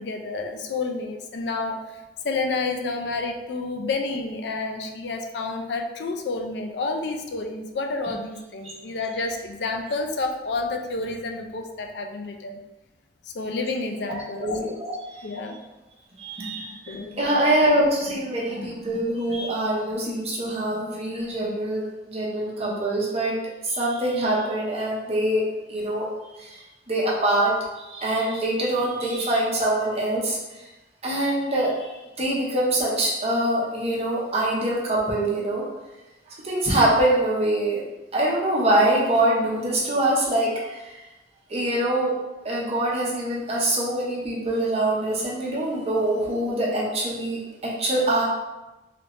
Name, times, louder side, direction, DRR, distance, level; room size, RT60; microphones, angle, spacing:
voice 1, 0.0-12.6 13.2-14.6 15.2-15.6 16.9-17.2, left 3 dB, 70° left, 4 dB, 0.4 m, -30 dB
voice 2, 14.1-14.9 16.2-23.4 23.6-26.1 26.4-30.4 31.0-35.6 36.4-37.8 38.1-41.0 41.5-42.1 42.4-48.2, right 1 dB, 35° right, -4 dB, 0.8 m, -24 dB
3.2 x 2.7 x 3.0 m, 1.0 s
head